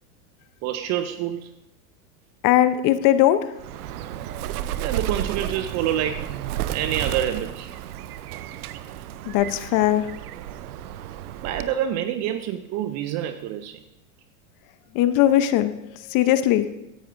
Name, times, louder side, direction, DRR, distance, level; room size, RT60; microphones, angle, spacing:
voice 1, 0.6-1.5 4.8-6.4 6.7-7.7 11.4-13.8, right 10 dB, 40° right, 11 dB, 0.5 m, -27 dB
voice 2, 2.4-3.4 9.3-10.0 14.9-15.7 16.1-16.7, left 13 dB, 45° left, 12 dB, 0.8 m, -19 dB
Bird, 3.6-11.9, right 12 dB, 80° right, 0.7 m, -32 dB
15.5 x 10.0 x 2.6 m, 0.89 s
hypercardioid pair, 105°, 45 cm